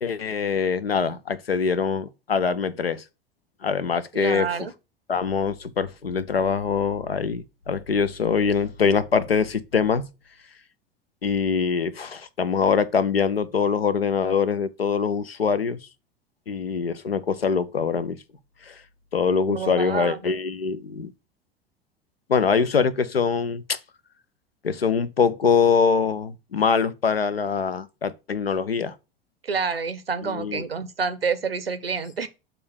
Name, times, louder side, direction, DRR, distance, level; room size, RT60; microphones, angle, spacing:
voice 1, 0.0-3.0 3.6-4.7 5.1-10.0 11.2-15.8 16.5-18.2 18.7-18.8 19.1-21.1 22.3-23.8 24.6-28.9 30.2-30.6, left 6 dB, 85° left, 0.7 m, -23 dB
voice 2, 4.1-4.7 19.5-20.2 29.4-32.3, right 5 dB, 90° right, 0.7 m, -28 dB
6.8 x 3.7 x 6.2 m
figure-of-eight pair, 85°, 29 cm